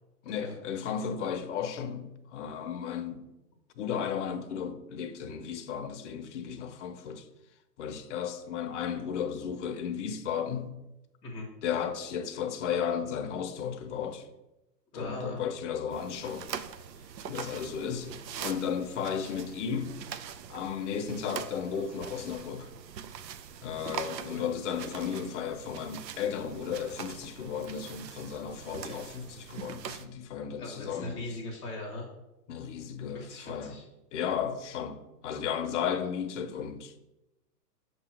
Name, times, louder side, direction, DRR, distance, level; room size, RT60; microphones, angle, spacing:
voice 1, 0.2-3.3 3.8-7.3 7.8-10.8 11.6-14.3 14.9-16.5 17.3-20.0 20.5-22.7 23.6-31.3 32.5-33.8 34.1-36.9, left 7 dB, 45° left, 0.7 m, -34 dB
voice 2, 14.9-15.4 24.3-24.4 30.6-32.1 33.1-33.8, left 2 dB, 10° left, 0.7 m, -39 dB
sound 1, 15.9-30.1, right 8 dB, 80° right, 0.7 m, -43 dB
6.6 x 3.0 x 5.6 m
hypercardioid pair, 145°, 50 cm